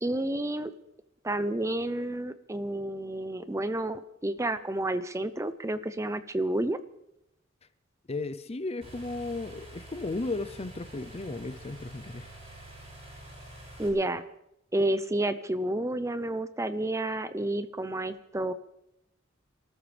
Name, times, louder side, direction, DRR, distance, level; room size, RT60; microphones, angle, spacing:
voice 1, 0.0-0.7 1.2-6.8 13.8-14.2 14.7-18.5, right 1 dB, 15° right, 0.6 m, -30 dB
voice 2, 8.1-12.3, left 2 dB, 30° left, 0.6 m, -35 dB
sound 1, 8.8-13.9, right 1 dB, 35° right, 6.5 m, -47 dB
28.0 x 14.0 x 3.4 m
head